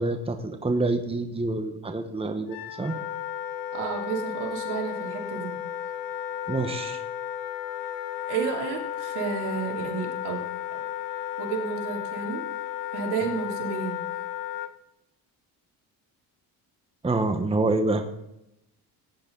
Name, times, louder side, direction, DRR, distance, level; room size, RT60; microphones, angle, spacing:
voice 1, 0.0-2.9 6.5-7.0 17.0-18.0, right 2 dB, 15° right, 6 dB, 1.3 m, -27 dB
Wind instrument woodwind instrument, 2.5-14.7, left 10 dB, 85° left, 1.1 m, -34 dB
voice 2, 3.7-5.6 8.3-10.4 10.7-10.8 11.4-12.4 12.9-14.0, right 6 dB, 75° right, -1 dB, 3.4 m, -31 dB
17.5 x 9.9 x 4.0 m, 0.86 s
cardioid pair, 100°, 41 cm